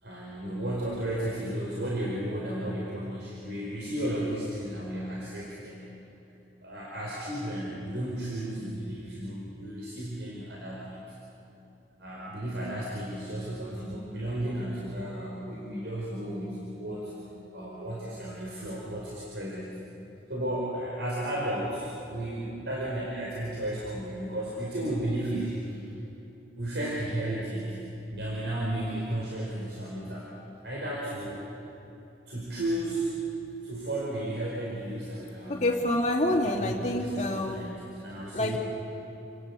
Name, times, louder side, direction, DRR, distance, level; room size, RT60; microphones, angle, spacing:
voice 1, 0.0-5.8 6.6-11.0 12.0-17.2 17.5-19.8 20.3-25.8 26.6-27.8 28.1-30.3 30.6-31.4 32.3-33.2 33.6-35.7 36.2-38.6, right 1 dB, 85° right, -5 dB, 4.9 m, -34 dB
voice 2, 35.5-37.7 38.3-38.6, left 1 dB, 40° left, 0 dB, 2.7 m, -27 dB
29.5 x 18.5 x 8.4 m, 3.0 s
head